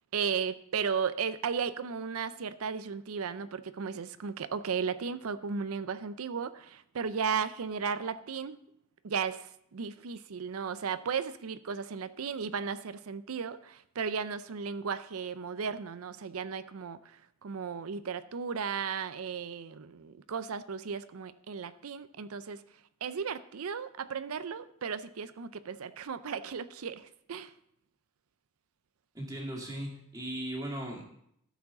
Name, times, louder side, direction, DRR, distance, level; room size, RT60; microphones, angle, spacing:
voice 1, 0.1-8.6 9.0-22.6 23.0-27.5, right 6 dB, 90° right, 13 dB, 0.5 m, -35 dB
voice 2, 29.1-31.0, right 1 dB, 15° right, -1 dB, 2.0 m, -37 dB
12.0 x 7.2 x 3.7 m, 0.71 s
head